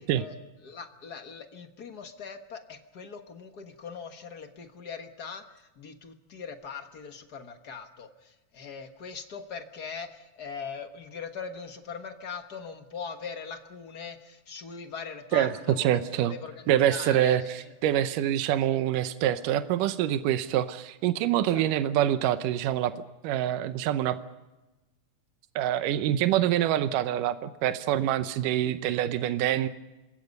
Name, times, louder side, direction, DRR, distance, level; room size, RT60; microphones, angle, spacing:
voice 1, 0.6-17.7 21.5-21.6, left 5 dB, 50° left, 7 dB, 1.2 m, -41 dB
voice 2, 15.3-16.4 16.7-22.9 23.2-24.2 25.6-29.7, right 11 dB, 80° right, 11 dB, 2.5 m, -25 dB
26.5 x 22.0 x 5.4 m, 1.1 s
omnidirectional pair, 3.7 m